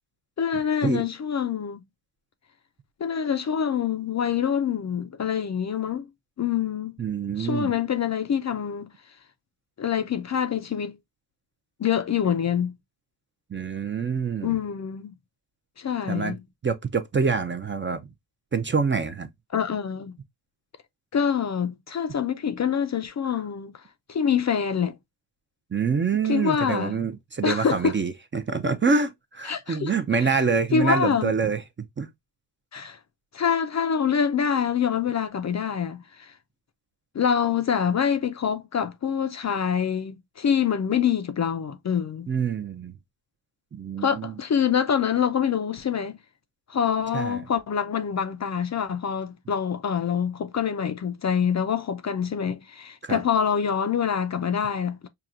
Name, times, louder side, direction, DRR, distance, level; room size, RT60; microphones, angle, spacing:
voice 1, 0.4-1.8 3.0-6.1 6.4-7.0 7.4-8.9 9.8-11.0 11.8-12.7 14.4-15.1 15.8-16.4 19.5-20.2 21.1-23.7 24.1-25.0 26.3-27.0 27.4-27.9 29.4-29.9 30.2-30.3 30.7-31.3 32.7-33.0 33.3-36.3 37.1-42.3 44.0-46.2 46.7-55.0, left 7 dB, 40° left, 0.5 m, -25 dB
voice 2, 7.0-7.7 13.5-14.6 16.1-16.4 16.6-18.0 18.5-19.3 25.7-31.6 32.0-32.1 42.3-42.9 43.7-44.3 47.1-47.4 53.0-53.2, right 5 dB, 25° right, 0.5 m, -26 dB
5.7 x 2.2 x 2.4 m
cardioid pair, 85°, 46 cm